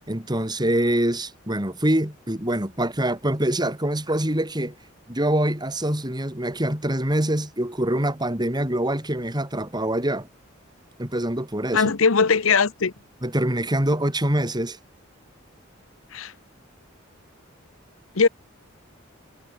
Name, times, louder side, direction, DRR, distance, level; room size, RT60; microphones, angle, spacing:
voice 1, 0.1-4.7 5.1-10.3 11.0-11.8 13.2-14.8, right 1 dB, 20° right, 5.5 m, -24 dB
voice 2, 11.7-12.9 16.1-16.3 18.1-18.3, left 5 dB, 75° left, 1.0 m, -19 dB
head